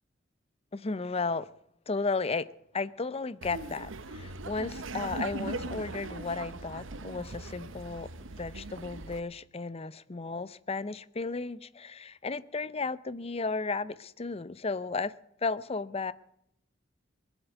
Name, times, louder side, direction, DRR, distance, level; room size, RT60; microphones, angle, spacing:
voice 1, 0.7-1.5 1.9-2.5 2.7-15.1 15.4-16.1, left 4 dB, 30° left, 0.6 m, -34 dB
Laughter, 3.4-9.2, right 2 dB, 85° right, 0.9 m, -40 dB
21.0 x 8.1 x 8.3 m
head